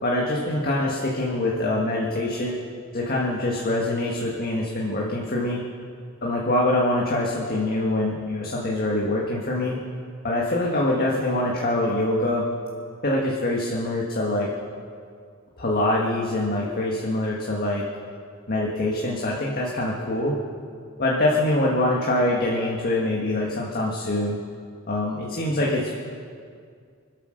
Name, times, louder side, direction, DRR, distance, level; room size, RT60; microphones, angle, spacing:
voice 1, 0.0-2.6 2.9-5.6 6.2-9.8 10.2-12.5 13.0-14.5 15.6-17.9 18.5-20.4 21.0-24.4 24.9-26.1, left 1 dB, 45° left, -3 dB, 1.7 m, -24 dB
25.0 x 8.4 x 6.5 m, 2.2 s
head